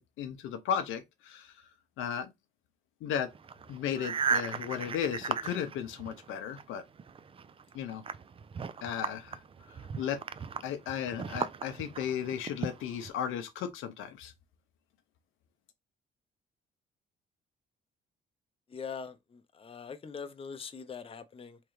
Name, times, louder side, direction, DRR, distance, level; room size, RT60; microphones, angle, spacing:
voice 1, 0.0-1.5 2.0-2.3 3.0-3.3 3.7-6.8 7.7-8.0 8.8-9.4 9.9-10.2 10.6-14.3, left 8 dB, 90° left, 0.7 m, -35 dB
sound 1, 3.3-6.6 7.0-13.1, right 6 dB, 30° right, 0.4 m, -37 dB
voice 2, 18.7-21.6, left 6 dB, 30° left, 0.6 m, -42 dB
3.6 x 3.2 x 3.1 m
cardioid pair, 90°, 20 cm